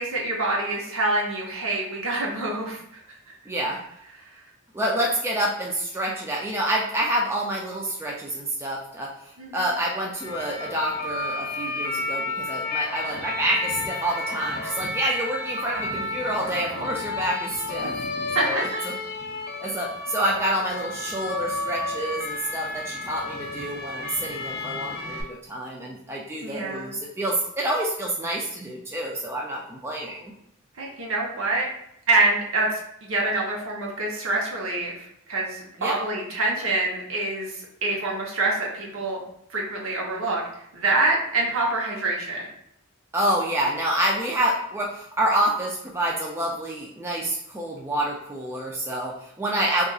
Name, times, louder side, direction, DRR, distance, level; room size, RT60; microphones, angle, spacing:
voice 1, 0.0-3.0 3.3-3.4 4.3-4.4 9.4-9.7 18.3-18.6 26.4-26.9 30.8-31.7 32.1-39.2 39.5-42.5, right 2 dB, 65° right, -2 dB, 0.8 m, -26 dB
voice 2, 3.5-3.8 4.7-17.9 18.4-18.9 19.6-30.3 35.8-36.0 43.1-49.9, right 1 dB, 10° right, -3 dB, 0.3 m, -28 dB
sound 1, 10.1-25.2, left 2 dB, 45° left, 0.5 m, -31 dB
3.9 x 2.4 x 2.3 m, 0.76 s
head